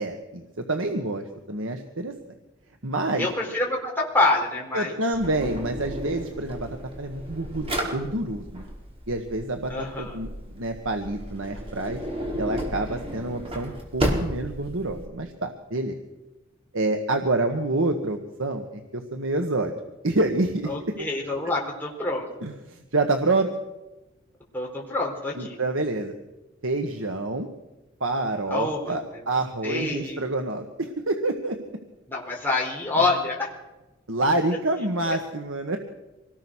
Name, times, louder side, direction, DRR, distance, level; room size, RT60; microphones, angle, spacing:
voice 1, 0.0-2.1 2.8-3.3 4.7-8.6 9.1-10.3 10.5-12.0 12.4-16.0 16.7-19.7 20.0-21.1 22.4-23.5 25.4-26.1 26.6-27.5 28.0-31.6 32.9-33.1 34.1-35.8, right 2 dB, 75° right, 5 dB, 1.7 m, -27 dB
voice 2, 3.2-5.0 9.7-10.3 20.7-22.2 24.5-25.6 28.5-29.0 29.6-30.2 32.1-33.5 35.0-35.2, left 2 dB, 10° left, -3 dB, 4.2 m, -26 dB
Drawer open or close, 5.1-15.1, equal, 30° right, 5.0 m, -33 dB
26.0 x 19.5 x 6.4 m, 1.0 s
head